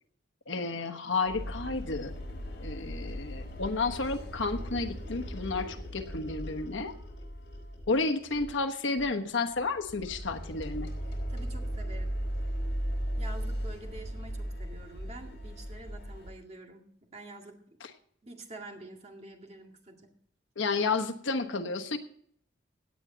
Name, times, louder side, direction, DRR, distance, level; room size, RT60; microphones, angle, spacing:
voice 1, 0.5-2.1 2.6-6.9 7.9-10.9 20.6-22.0, left 3 dB, 80° left, 6 dB, 1.2 m, -31 dB
sound 1, 1.3-8.0 8.3-8.6 9.0-9.1 9.5-16.3, equal, 60° left, 3.7 m, -37 dB
voice 2, 11.1-12.2 13.2-16.8 17.1-17.8 18.2-20.1, right 2 dB, 35° right, 2 dB, 2.0 m, -47 dB
17.0 x 9.0 x 4.0 m, 0.64 s
head